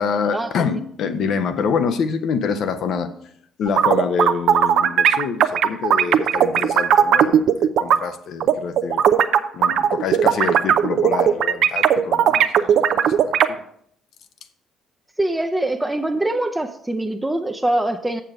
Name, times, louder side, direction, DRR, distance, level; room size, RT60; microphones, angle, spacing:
voice 1, 0.0-3.1 3.6-9.0 9.5-13.4, left 6 dB, 60° left, 9 dB, 0.8 m, -26 dB
sound 1, 3.7-8.0 8.4-13.5, right 9 dB, 65° right, 0.5 m, -16 dB
voice 2, 15.2-18.2, right 1 dB, 15° right, 5 dB, 0.7 m, -23 dB
7.5 x 6.9 x 4.9 m, 0.67 s
hypercardioid pair, 50°, 0 cm